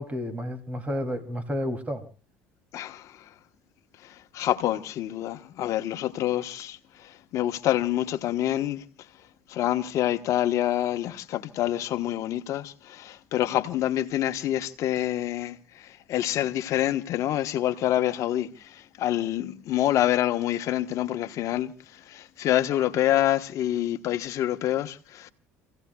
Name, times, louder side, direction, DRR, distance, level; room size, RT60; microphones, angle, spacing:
voice 1, 0.0-2.1, equal, 25° right, 3.0 m, -31 dB
voice 2, 2.7-3.3 4.0-25.3, left 13 dB, 55° left, 1.2 m, -27 dB
29.0 x 16.5 x 2.4 m
supercardioid pair, 80°, 6 cm